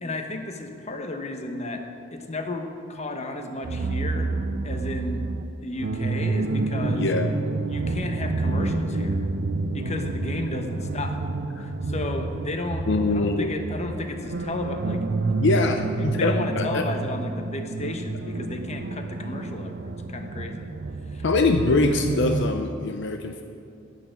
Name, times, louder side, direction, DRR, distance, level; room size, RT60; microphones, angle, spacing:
voice 1, 0.0-1.8 2.1-4.3 4.6-5.2 5.6-7.1 7.7-9.2 9.7-11.2 11.6-15.1 15.5-15.6 16.0-20.7 21.1-21.2, left 2 dB, 35° left, 5 dB, 1.0 m, -33 dB
sound 1, 3.6-22.6, right 3 dB, 55° right, 0.5 m, -29 dB
voice 2, 6.9-7.3 11.6-11.7 12.9-13.8 15.4-16.8 21.2-23.4, left 3 dB, 65° left, 6 dB, 0.6 m, -24 dB
11.5 x 6.6 x 9.2 m, 2.5 s
head